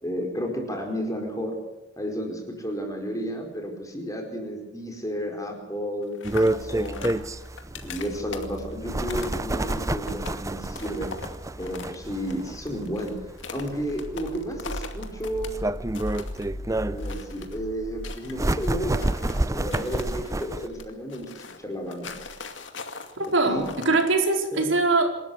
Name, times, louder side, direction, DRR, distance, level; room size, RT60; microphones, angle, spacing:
voice 1, 0.0-1.6 2.0-7.1 7.8-11.1 11.6-15.5 16.8-22.2 23.5-23.7 24.5-24.7, equal, 15° left, 2 dB, 4.8 m, -32 dB
sound 1, 6.0-11.9 12.2-15.6 15.8-16.4 17.0-17.6 18.0-19.4 19.7-24.1, left 4 dB, 70° left, 2.4 m, -41 dB
sound 2, 6.2-20.7, right 1 dB, 15° right, 0.6 m, -29 dB
sound 3, 14.3-20.1 20.6-20.9 22.1-22.4 23.5-24.0, left 1 dB, 45° left, 2.5 m, -39 dB
voice 2, 23.2-25.1, right 3 dB, 80° right, 2 dB, 4.5 m, -22 dB
27.0 x 13.0 x 7.9 m, 1.0 s
head